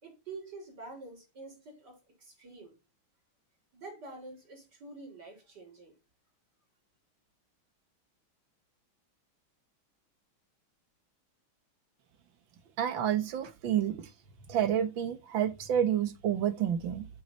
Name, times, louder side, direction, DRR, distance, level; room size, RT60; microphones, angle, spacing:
voice 1, 0.0-2.8 3.7-5.9, right 3 dB, 55° right, 5.0 m, -47 dB
voice 2, 12.8-14.1 14.5-17.1, right 9 dB, 70° right, 1.8 m, -29 dB
8.9 x 6.3 x 4.1 m
omnidirectional pair, 2.2 m